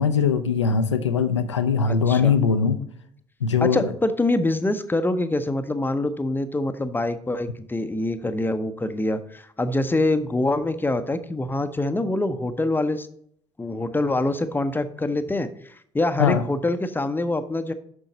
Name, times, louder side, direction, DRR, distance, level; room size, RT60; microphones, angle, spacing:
voice 1, 0.0-2.8 3.4-3.9 16.2-16.4, left 6 dB, 80° left, 9 dB, 0.6 m, -21 dB
voice 2, 1.8-2.3 3.6-13.1 13.6-17.7, left 2 dB, 15° left, 10 dB, 0.7 m, -25 dB
7.8 x 6.2 x 4.0 m, 0.64 s
figure-of-eight pair, 50°, 15 cm